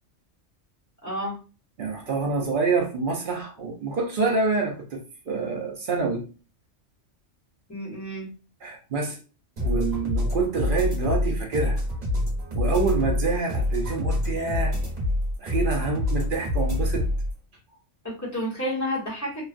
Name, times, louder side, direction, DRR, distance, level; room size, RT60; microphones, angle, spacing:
voice 1, 1.0-1.3 7.7-8.3 18.0-19.4, equal, 15° left, -6 dB, 1.1 m, -30 dB
voice 2, 1.8-5.0 5.3-6.2 8.6-9.2 9.6-11.8 12.5-14.8 15.4-17.1, right 3 dB, 55° right, 1 dB, 0.7 m, -27 dB
sound 1, 9.6-17.3, left 1 dB, 35° right, 1.1 m, -26 dB
3.1 x 2.3 x 2.4 m, 0.34 s
omnidirectional pair, 1.2 m